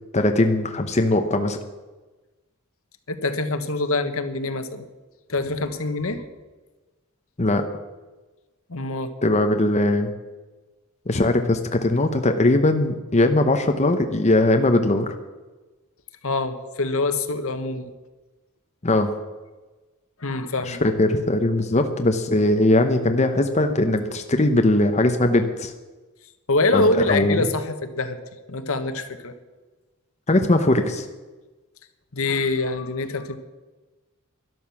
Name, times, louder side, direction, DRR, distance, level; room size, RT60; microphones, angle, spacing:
voice 1, 0.1-1.6 7.4-7.6 9.2-10.1 11.1-15.1 18.8-19.1 20.7-25.7 26.7-27.5 30.3-31.1, left 2 dB, 30° left, 6 dB, 0.9 m, -20 dB
voice 2, 3.1-4.8 5.3-6.2 8.7-9.1 16.2-17.9 20.2-20.8 26.5-28.2 28.5-29.3 32.1-33.4, left 2 dB, 65° left, 9 dB, 1.3 m, -25 dB
12.5 x 11.5 x 7.1 m, 1.2 s
head